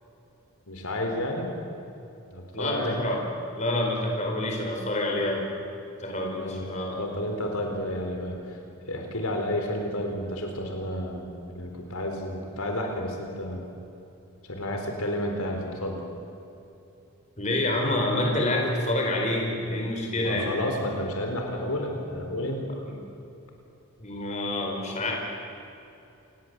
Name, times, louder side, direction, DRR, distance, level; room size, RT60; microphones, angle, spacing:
voice 1, 0.7-1.5 2.3-3.0 6.3-6.7 7.0-8.6 8.9-13.6 14.5-16.0 20.2-22.6, left 1 dB, 75° left, 2 dB, 4.1 m, -31 dB
voice 2, 2.5-3.2 3.6-5.5 6.0-7.0 17.4-20.6 22.8-22.9 24.0-25.1, left 1 dB, 30° left, 0 dB, 4.5 m, -27 dB
28.5 x 19.5 x 8.0 m, 2.8 s
head